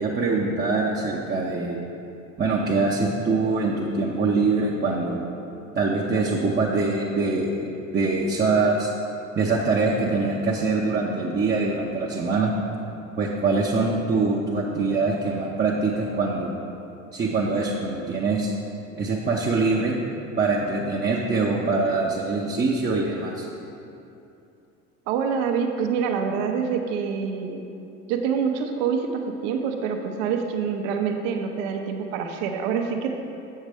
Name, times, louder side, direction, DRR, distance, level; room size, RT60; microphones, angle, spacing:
voice 1, 0.0-1.8 2.4-5.2 5.8-7.7 7.9-8.9 9.4-12.5 13.2-16.6 17.1-18.5 18.9-19.9 20.4-23.5, right 3 dB, 25° right, -3 dB, 0.7 m, -23 dB
voice 2, 25.1-27.6 28.1-33.2, right 6 dB, 65° right, 4 dB, 0.8 m, -26 dB
8.0 x 6.5 x 3.5 m, 2.7 s
hypercardioid pair, 70°, 39 cm